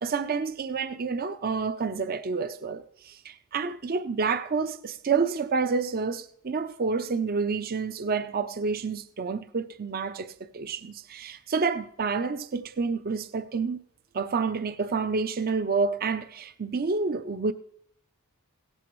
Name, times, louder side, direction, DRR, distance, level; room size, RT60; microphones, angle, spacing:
voice 1, 0.0-13.8 14.1-17.5, right 4 dB, 40° right, 0.5 m, -29 dB
17.0 x 14.0 x 3.1 m
head